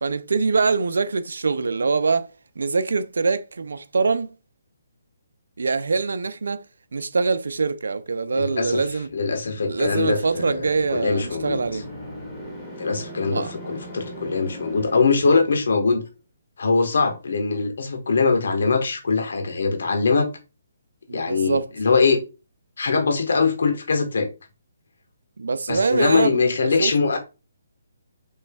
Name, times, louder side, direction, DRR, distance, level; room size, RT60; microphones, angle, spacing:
voice 1, 0.0-4.3 5.6-6.7 6.9-9.1 9.7-11.9 13.2-13.5 21.1-21.7 25.4-27.2, right 4 dB, 75° right, 0.4 m, -24 dB
voice 2, 8.3-8.8 9.1-11.6 12.8-16.0 16.6-20.3 21.1-22.2 22.8-24.3 25.7-27.2, left 4 dB, 70° left, 1.3 m, -22 dB
sound 1, 9.1-16.0, equal, 10° left, 1.6 m, -39 dB
5.3 x 3.2 x 2.3 m
hypercardioid pair, 150°, 0 cm